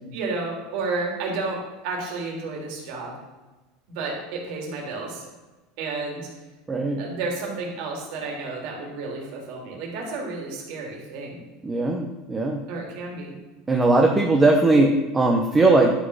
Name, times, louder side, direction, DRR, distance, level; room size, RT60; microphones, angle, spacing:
voice 1, 0.1-3.2 3.9-5.3 5.8-6.3 7.0-11.4 12.7-13.3, right 3 dB, 60° right, 0 dB, 3.3 m, -31 dB
voice 2, 6.7-7.0 11.6-12.6 13.7-15.9, right 2 dB, 15° right, 1 dB, 1.0 m, -19 dB
11.5 x 6.0 x 5.6 m, 1.2 s
supercardioid pair, 150°, 0 cm